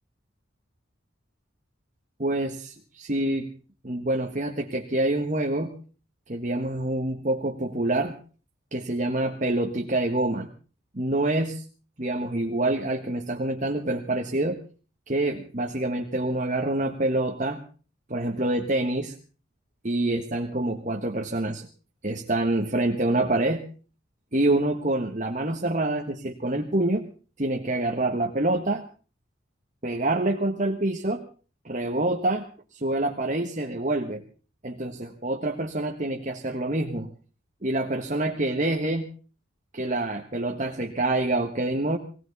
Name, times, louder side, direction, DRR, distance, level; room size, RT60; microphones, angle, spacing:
voice 1, 2.2-3.5 3.8-5.7 6.3-8.1 8.7-10.5 10.9-11.6 12.0-14.6 15.1-17.6 18.1-19.1 19.8-21.7 22.0-23.6 24.3-27.0 27.4-28.8 29.8-31.2 31.6-32.5 32.7-34.2 34.6-37.1 37.6-39.1 39.7-42.0, right 2 dB, 40° right, 3 dB, 1.3 m, -26 dB
20.5 x 17.0 x 4.1 m, 0.38 s
head